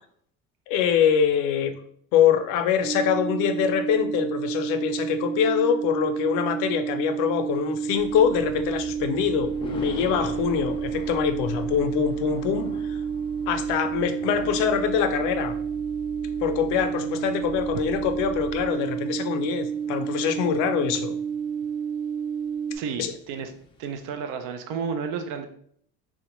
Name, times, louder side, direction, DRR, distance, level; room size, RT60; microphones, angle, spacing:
voice 1, 0.7-1.8 2.1-13.0 13.5-15.5 16.4-21.2 23.0-23.1, left 8 dB, 90° left, 7 dB, 0.5 m, -24 dB
sound 1, 2.8-22.8, right 7 dB, 15° right, 0.7 m, -30 dB
Thunder, 7.0-24.1, left 3 dB, 20° left, 0.3 m, -45 dB
sound 2, 7.9-18.7, left 2 dB, 60° right, 0.8 m, -43 dB
voice 2, 22.7-23.5 23.8-25.5, right 6 dB, 80° right, 7 dB, 0.5 m, -32 dB
3.6 x 2.1 x 2.9 m, 0.64 s
cardioid pair, 145°, 30 cm